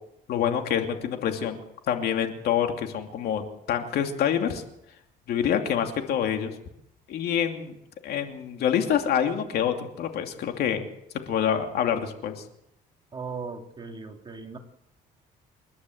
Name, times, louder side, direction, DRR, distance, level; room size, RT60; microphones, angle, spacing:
voice 1, 0.3-1.6 1.9-4.6 5.3-6.5 7.1-7.7 8.0-10.9 11.3-12.4, left 9 dB, 70° left, 5 dB, 2.8 m, -26 dB
voice 2, 13.1-14.6, right 4 dB, 30° right, 3 dB, 3.1 m, -37 dB
28.5 x 12.0 x 8.0 m, 0.82 s
cardioid pair, 110°, 17 cm